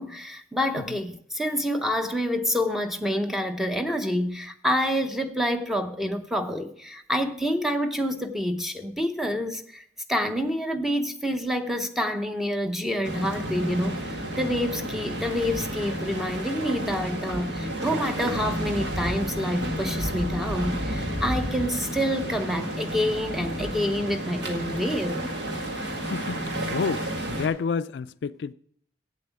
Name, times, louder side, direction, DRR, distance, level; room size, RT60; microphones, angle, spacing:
voice 1, 0.0-9.8 10.1-25.2, equal, ahead, 0.7 m, -27 dB
sound 1, 13.0-27.5, right 1 dB, 80° right, 1.9 m, -31 dB
voice 2, 26.0-28.5, left 5 dB, 75° left, 0.4 m, -30 dB
8.3 x 7.5 x 7.1 m
head